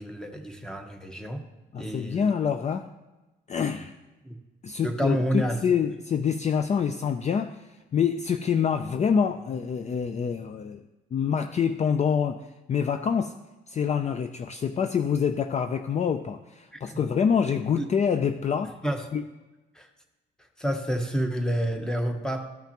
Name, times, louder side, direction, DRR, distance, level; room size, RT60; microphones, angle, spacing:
voice 1, 0.0-1.4 1.7-2.3 4.2-4.3 4.8-5.6 16.7-17.0 17.8-17.9 18.8-19.0 19.7-19.9 20.6-22.4, right 1 dB, 5° left, 4 dB, 1.1 m, -29 dB
voice 2, 1.7-2.9 3.5-3.9 4.6-13.3 13.7-18.8 19.1-19.2, left 7 dB, 35° left, 9 dB, 0.4 m, -26 dB
14.0 x 5.6 x 3.0 m, 1.1 s
cardioid pair, 90°, 20 cm